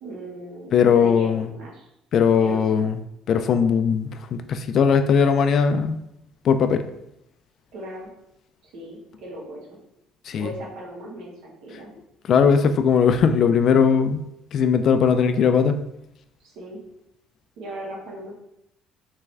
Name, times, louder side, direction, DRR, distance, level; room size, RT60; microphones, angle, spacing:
voice 1, 0.0-1.9 2.4-2.8 7.7-8.1 8.6-9.7 10.4-11.9 16.4-16.8 17.6-18.4, equal, 75° right, -2 dB, 1.3 m, -37 dB
voice 2, 0.7-1.5 2.1-3.0 3.3-6.0 6.4-6.8 10.3-10.5 12.3-14.2 14.5-15.8, left 6 dB, 55° left, 9 dB, 0.3 m, -19 dB
3.5 x 3.3 x 3.3 m, 0.82 s
cardioid pair, 105°, 0 cm